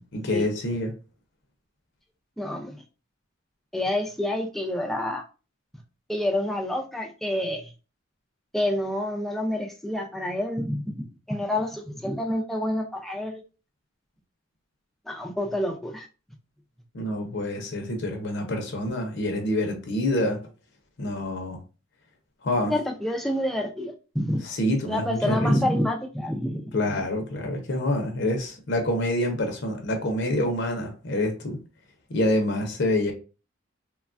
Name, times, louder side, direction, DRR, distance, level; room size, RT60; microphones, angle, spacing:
voice 1, 0.1-0.9 16.9-20.4 21.0-21.6 22.4-22.7 24.4-25.5 26.7-31.6 32.1-33.1, left 1 dB, 65° left, 0.6 m, -27 dB
voice 2, 2.4-2.8 3.7-5.2 6.1-7.7 8.5-13.4 15.1-16.1 22.7-24.4 24.9-26.6 27.0-27.1, left 1 dB, ahead, 0.4 m, -28 dB
3.1 x 2.2 x 2.4 m
head